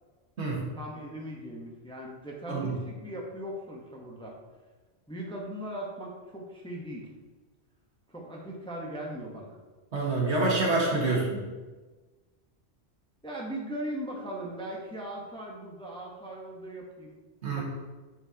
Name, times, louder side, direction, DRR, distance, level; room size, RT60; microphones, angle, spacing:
voice 1, 0.7-4.3 5.1-7.1 8.1-9.6 11.1-11.2 13.2-17.1 17.5-17.6, right 1 dB, 5° left, -2 dB, 0.8 m, -39 dB
voice 2, 9.9-11.4 17.4-17.6, right 2 dB, 70° right, -3 dB, 1.8 m, -26 dB
9.4 x 4.4 x 2.8 m, 1.3 s
omnidirectional pair, 1.2 m